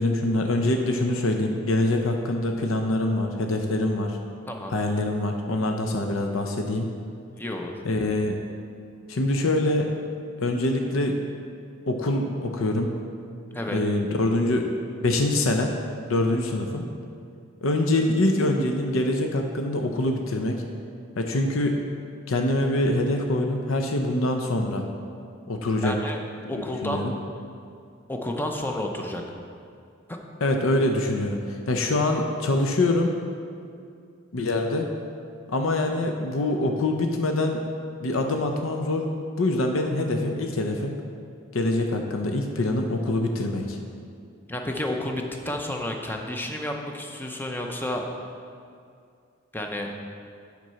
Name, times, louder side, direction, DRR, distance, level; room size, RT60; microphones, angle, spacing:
voice 1, 0.0-4.2 4.7-6.9 7.8-8.4 9.1-9.9 10.4-11.2 11.9-12.9 13.7-14.7 15.0-15.7 16.1-16.8 17.6-20.6 21.2-21.7 22.3-24.8 25.5-25.9 26.4-27.1 30.4-33.1 34.3-34.9 35.5-37.6 38.0-39.1 39.4-40.9 41.5-43.8, left 2 dB, 80° left, 3 dB, 0.6 m, -24 dB
voice 2, 7.3-7.7 13.5-13.8 25.8-26.2 26.5-27.0 28.1-29.2 44.5-48.0 49.5-49.9, left 1 dB, 10° left, 2 dB, 0.6 m, -31 dB
7.7 x 5.3 x 5.6 m, 2.4 s
head